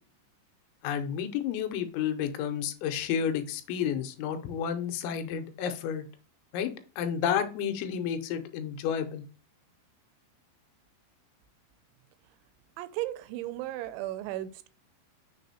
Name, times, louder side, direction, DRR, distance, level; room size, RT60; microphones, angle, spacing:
voice 1, 0.8-6.1 6.5-6.7 7.0-9.2, left 8 dB, 90° left, 3.1 m, -31 dB
voice 2, 12.8-14.7, right 14 dB, 85° right, 2.9 m, -35 dB
6.6 x 3.7 x 4.2 m
omnidirectional pair, 5.2 m